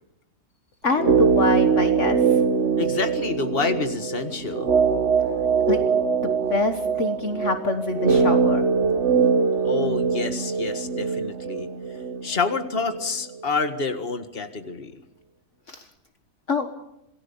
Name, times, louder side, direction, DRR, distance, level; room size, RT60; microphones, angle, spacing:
voice 1, 0.8-2.4 5.7-5.9 6.2-8.7 15.7-15.9 16.5-16.7, left 3 dB, 55° left, 6 dB, 1.8 m, -26 dB
sound 1, 0.9-13.1 13.3-13.4, right 5 dB, 55° right, 1.5 m, -22 dB
voice 2, 2.8-4.7 9.6-11.7 12.2-14.9, left 4 dB, 40° left, 8 dB, 1.9 m, -28 dB
27.5 x 19.5 x 7.1 m, 0.81 s
omnidirectional pair, 1.5 m